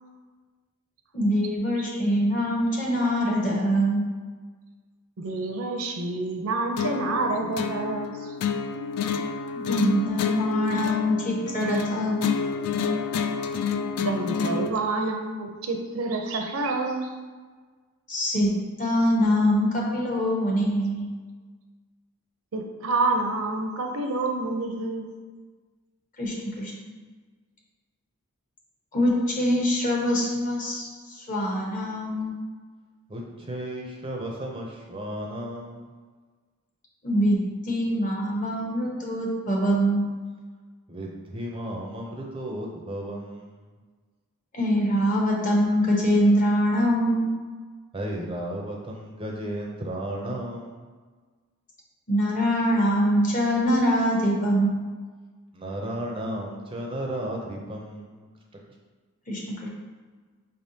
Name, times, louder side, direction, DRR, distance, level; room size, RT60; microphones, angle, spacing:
voice 1, 1.1-4.0 9.5-12.2 18.1-18.5 18.8-21.1 26.2-26.7 28.9-32.3 37.0-40.1 44.5-47.4 52.1-54.9 59.3-59.7, equal, 35° left, -3 dB, 1.0 m, -24 dB
voice 2, 5.2-8.4 14.0-17.1 22.5-25.1, right 3 dB, 70° right, 3 dB, 0.6 m, -28 dB
sound 1, 6.8-14.8, left 6 dB, 85° left, 0.3 m, -29 dB
voice 3, 33.1-35.9 40.9-43.8 47.9-50.9 55.5-58.3, right 1 dB, 25° right, -1 dB, 0.5 m, -34 dB
5.4 x 3.5 x 2.7 m, 1.4 s
head